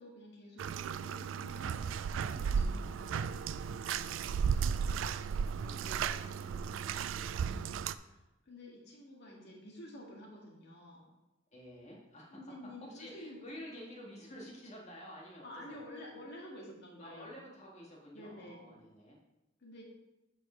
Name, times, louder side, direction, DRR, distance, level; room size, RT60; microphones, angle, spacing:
voice 1, 0.0-3.8 7.5-7.8 8.1-8.2 8.5-11.1 12.3-13.4 15.4-17.4 18.1-18.7 19.6-19.8, left 1 dB, 60° left, -2 dB, 1.8 m, -50 dB
Bathtub (filling or washing), 0.6-8.0, right 6 dB, 75° right, 0.3 m, -35 dB
voice 2, 2.5-3.2 4.4-7.7 11.5-12.4 12.8-15.8 17.0-19.2, equal, 35° left, -3 dB, 1.8 m, -51 dB
7.7 x 4.9 x 5.0 m, 0.96 s
head